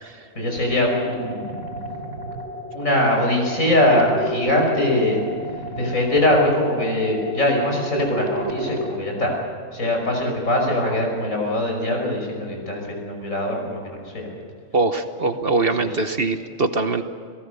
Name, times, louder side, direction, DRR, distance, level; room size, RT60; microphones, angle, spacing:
voice 1, 0.3-1.6 2.7-5.2 5.8-9.4 9.7-14.3 15.8-16.0, left 1 dB, 70° left, 1 dB, 6.2 m, -22 dB
sound 1, 0.9-8.9, right 1 dB, 90° right, 4.2 m, -32 dB
voice 2, 14.7-17.0, right 3 dB, 45° right, 8 dB, 1.2 m, -22 dB
29.5 x 18.0 x 6.9 m, 2.2 s
omnidirectional pair, 1.4 m